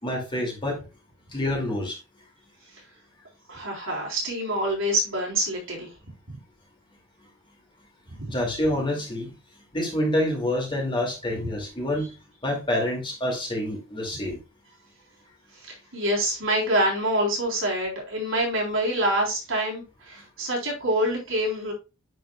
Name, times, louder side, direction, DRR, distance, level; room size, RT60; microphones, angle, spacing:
voice 1, 0.0-0.8 1.3-2.0 8.3-9.3 9.7-12.1 12.4-14.4, left 1 dB, 25° left, -1 dB, 2.5 m, -27 dB
voice 2, 3.5-5.9 8.1-8.4 15.5-21.7, right 1 dB, 75° right, -2 dB, 3.7 m, -26 dB
9.8 x 4.7 x 2.3 m, 0.28 s
head